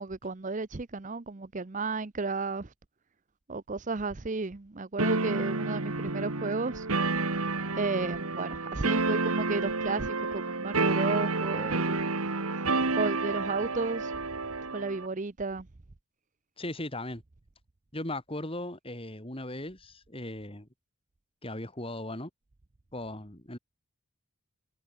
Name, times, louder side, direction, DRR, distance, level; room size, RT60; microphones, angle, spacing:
voice 1, 0.0-2.7 3.5-6.9 7.8-12.0 13.0-14.1 14.7-15.7, right 3 dB, 35° right, 0.7 m, -33 dB
sound 1, 5.0-15.1, right 3 dB, 85° right, 2.3 m, -30 dB
voice 2, 16.6-17.2 17.9-20.7 21.4-22.3 22.9-23.6, left 1 dB, 25° left, 3.1 m, -38 dB
head